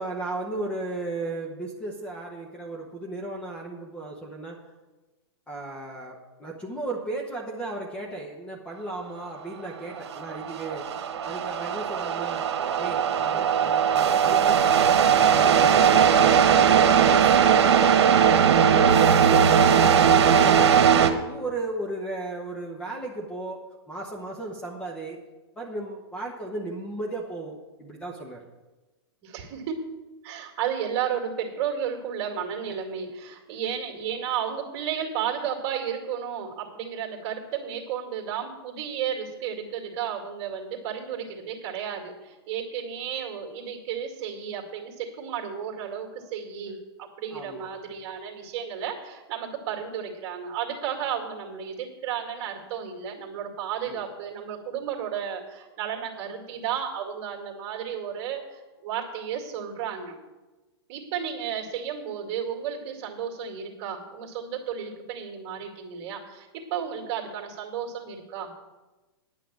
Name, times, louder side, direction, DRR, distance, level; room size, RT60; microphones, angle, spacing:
voice 1, 0.0-4.6 5.5-10.9 11.2-12.4 12.8-18.3 18.7-20.8 21.3-23.6 23.9-25.2 25.6-28.4 47.3-47.7 53.8-54.0, right 2 dB, 10° left, 0 dB, 1.0 m, -35 dB
sound 1, 10.0-21.1, right 8 dB, 75° right, 1.2 m, -19 dB
voice 2, 29.2-29.9 30.2-60.2 60.9-68.5, right 8 dB, 35° right, 2 dB, 2.2 m, -33 dB
10.0 x 5.8 x 8.5 m, 1.1 s
hypercardioid pair, 150°, 14 cm